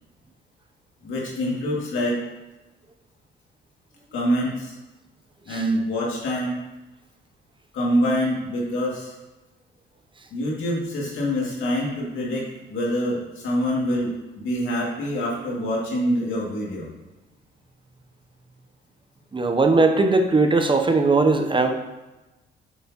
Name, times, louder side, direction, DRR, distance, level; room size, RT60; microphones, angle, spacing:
voice 1, 1.0-2.2 4.1-4.7 5.5-6.6 7.7-9.1 10.3-14.1 14.4-16.9, equal, 80° left, -3 dB, 2.2 m, -25 dB
voice 2, 19.3-21.8, right 3 dB, 25° right, 5 dB, 0.6 m, -19 dB
6.8 x 6.4 x 2.9 m, 1.1 s
cardioid pair, 90°, 20 cm